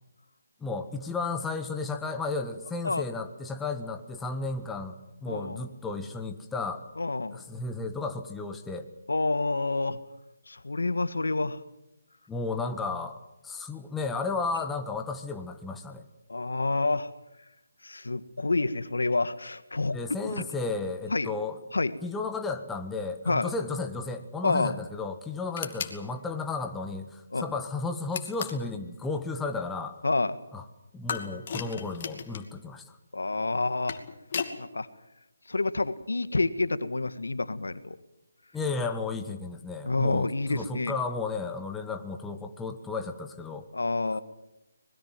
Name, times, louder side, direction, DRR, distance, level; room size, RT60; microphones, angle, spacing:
voice 1, 0.6-5.0 5.2-6.8 7.3-8.9 12.3-13.2 13.4-16.0 19.9-21.6 22.0-30.0 30.5-30.6 30.9-33.0 38.5-43.7, left 3 dB, 5° left, 5 dB, 1.6 m, -33 dB
voice 2, 5.3-5.6 7.0-7.4 9.1-10.0 10.5-11.6 16.3-17.1 17.8-20.0 20.4-20.5 21.1-21.3 21.7-22.0 23.2-23.5 24.4-24.7 27.3-27.4 30.0-30.4 33.1-34.0 34.6-34.9 35.5-38.0 39.8-40.9 43.7-44.2, left 3 dB, 80° left, 13 dB, 1.7 m, -28 dB
sound 1, 25.6-26.0 28.1-28.7 31.1-32.5 33.6-34.6, left 6 dB, 40° left, 2.6 m, -35 dB
25.5 x 21.0 x 7.7 m, 0.88 s
figure-of-eight pair, 155°, 0 cm